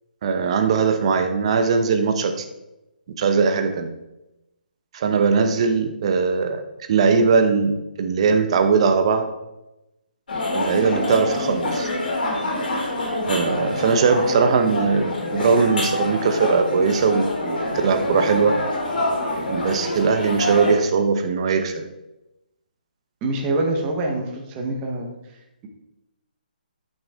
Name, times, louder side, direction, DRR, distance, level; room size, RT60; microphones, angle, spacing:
voice 1, 0.2-2.3 3.2-3.9 4.9-6.6 6.9-9.3 10.5-11.9 13.2-17.6 17.8-18.6 19.5-21.8, right 5 dB, 35° right, 7 dB, 1.0 m, -20 dB
sound 1, 10.3-20.7, left 1 dB, 65° left, 3.2 m, -26 dB
voice 2, 23.2-25.1, right 2 dB, 20° right, 1 dB, 1.2 m, -25 dB
10.5 x 6.6 x 3.7 m, 0.95 s
hypercardioid pair, 165°, 5 cm